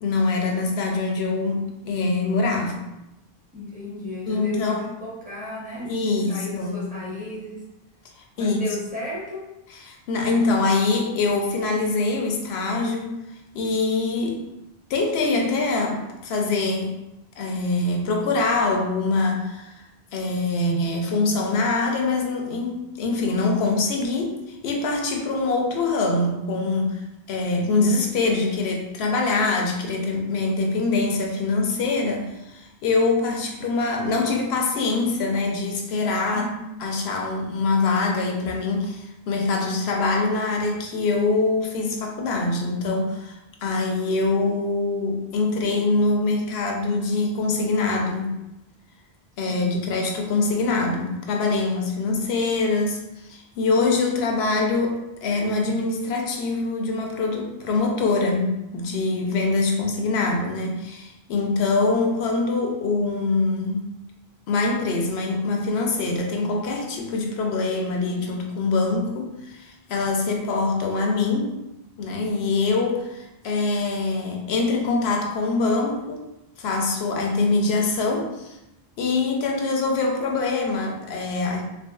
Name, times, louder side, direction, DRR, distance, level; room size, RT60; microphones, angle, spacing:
voice 1, 0.0-2.8 4.3-4.9 5.8-6.8 8.4-8.6 9.8-13.2 13.5-14.4 14.9-16.9 17.4-19.8 20.1-36.5 36.8-48.3 49.4-63.8 64.5-71.5 72.0-76.2 76.6-78.6 79.0-81.6, left 3 dB, 85° left, 2 dB, 0.8 m, -24 dB
voice 2, 3.5-7.6 8.4-9.5 36.3-36.8 49.5-49.9, left 2 dB, 10° right, -5 dB, 0.7 m, -34 dB
3.6 x 2.6 x 2.2 m, 0.92 s
omnidirectional pair, 1.0 m